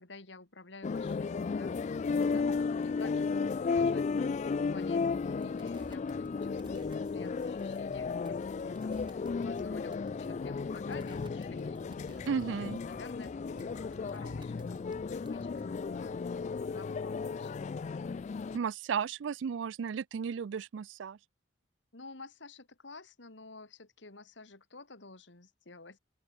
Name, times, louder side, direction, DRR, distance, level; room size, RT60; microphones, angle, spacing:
voice 1, 0.0-12.3 12.5-17.5 21.9-26.0, left 3 dB, 70° left, 2.4 m, -51 dB
sound 1, 0.8-18.6, left 5 dB, 40° left, 0.3 m, -34 dB
sound 2, 5.1-15.7, right 1 dB, 25° right, 1.5 m, -53 dB
voice 2, 12.3-12.8 18.5-21.2, right 6 dB, 70° right, 0.4 m, -34 dB
open air
head